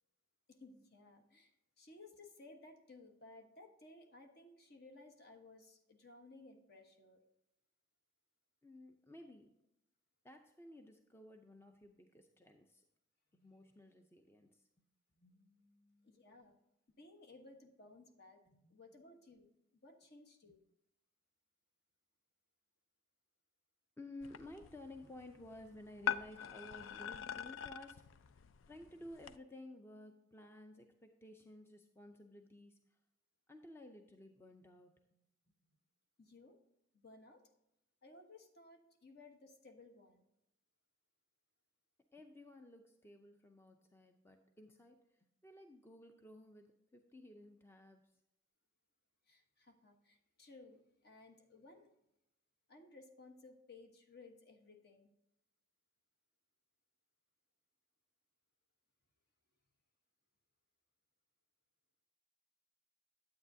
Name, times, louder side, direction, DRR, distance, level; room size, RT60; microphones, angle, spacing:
voice 1, 0.5-7.2 16.0-16.5 17.0-18.4 18.7-19.5 19.8-20.6 36.2-36.6 36.9-37.4 38.0-40.2 49.3-51.9 52.7-55.1, left 2 dB, 55° left, 4 dB, 1.2 m, -59 dB
voice 2, 8.6-9.5 10.2-12.8 13.3-14.7 15.2-16.5 18.5-18.8 20.4-20.6 24.0-28.1 28.7-33.0 33.5-35.2 42.1-48.1, left 1 dB, 10° left, 5 dB, 0.5 m, -55 dB
sound 1, 24.2-29.4, left 9 dB, 70° left, 0.4 m, -44 dB
9.7 x 8.6 x 2.7 m, 0.86 s
head